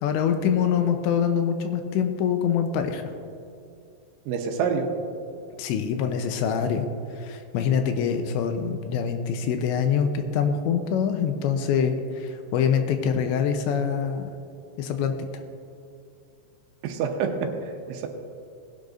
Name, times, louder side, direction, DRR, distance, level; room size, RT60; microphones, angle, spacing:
voice 1, 0.0-3.0 5.6-6.9 7.2-14.3 14.8-15.1, left 7 dB, 85° left, 6 dB, 2.8 m, -25 dB
voice 2, 4.3-4.9 16.8-18.1, right 6 dB, 85° right, 4 dB, 3.3 m, -27 dB
19.0 x 10.5 x 2.6 m, 2.6 s
omnidirectional pair, 5.4 m